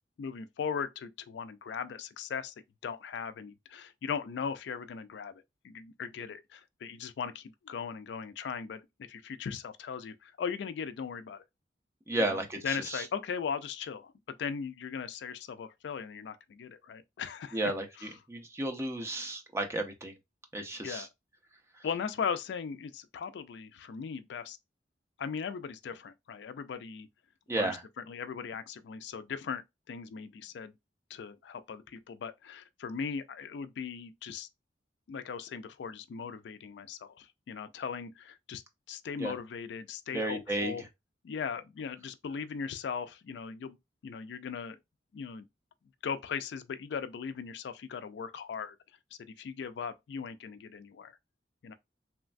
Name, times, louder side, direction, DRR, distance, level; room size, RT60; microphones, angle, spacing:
voice 1, 0.2-2.5 2.8-11.4 12.2-14.1 14.4-17.6 18.0-18.1 19.2-19.3 20.8-21.1 21.8-24.6 25.2-27.1 27.5-27.8 28.1-30.7 31.1-34.5 35.1-38.6 38.9-40.8 41.2-43.8 44.0-44.8 45.1-45.5 46.0-48.7 49.2-51.2 51.6-51.7, left 6 dB, 70° left, 0.3 m, -38 dB
voice 2, 12.1-13.0 17.5-20.1 20.5-21.1 27.5-27.8 39.2-39.3 40.1-40.7, right 1 dB, 15° right, 0.5 m, -33 dB
3.1 x 2.2 x 2.4 m
head